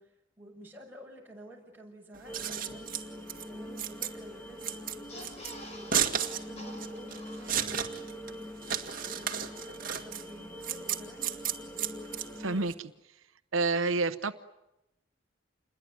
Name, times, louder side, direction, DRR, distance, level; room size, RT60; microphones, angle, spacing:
voice 1, 0.0-3.0 3.5-8.1 9.0-9.5 9.7-11.4, right 1 dB, 10° right, -1 dB, 6.2 m, -51 dB
Scissors, 2.1-12.7, right 8 dB, 45° right, 2.0 m, -34 dB
sound 1, 2.3-12.7, equal, 10° left, 1.7 m, -44 dB
sound 2, 5.1-7.9 8.3-8.4 8.6-8.8, left 1 dB, 30° left, 5.3 m, -49 dB
voice 2, 12.4-12.9 13.5-14.3, right 3 dB, 85° right, 10 dB, 0.9 m, -28 dB
28.5 x 21.5 x 9.6 m, 0.93 s
head